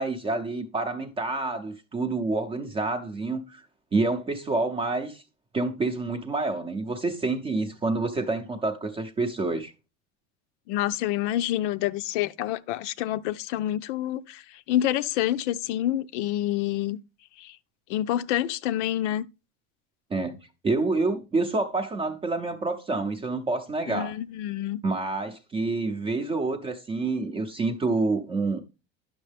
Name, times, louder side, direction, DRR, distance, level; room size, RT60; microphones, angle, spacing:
voice 1, 0.0-3.6 3.9-5.2 5.5-9.7 20.1-20.4 20.6-24.1 24.8-28.6, right 3 dB, 15° right, 0.6 m, -28 dB
voice 2, 10.7-14.4 14.7-17.0 17.4-17.6 17.9-19.3 23.9-24.8, left 13 dB, 75° left, 0.7 m, -27 dB
10.5 x 6.3 x 3.4 m
cardioid pair, 165°, 36 cm